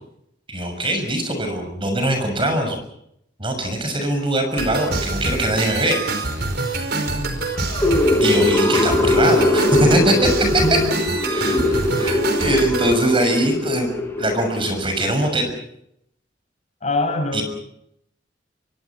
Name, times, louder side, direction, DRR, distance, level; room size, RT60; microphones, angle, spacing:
voice 1, 0.5-2.8 3.4-6.1 8.2-10.3 11.3-11.5 12.0-13.9 14.2-15.5 17.3-17.4, right 1 dB, 30° right, 6 dB, 6.6 m, -21 dB
sound 1, 4.6-12.9, right 2 dB, 60° right, 4.8 m, -25 dB
voice 2, 6.9-7.4 10.4-11.2 11.4-11.8 16.8-17.4, left 1 dB, 40° left, 5 dB, 6.5 m, -25 dB
sound 2, 7.6-14.8, left 2 dB, 15° left, 5.1 m, -21 dB
25.5 x 23.5 x 6.1 m, 0.74 s
head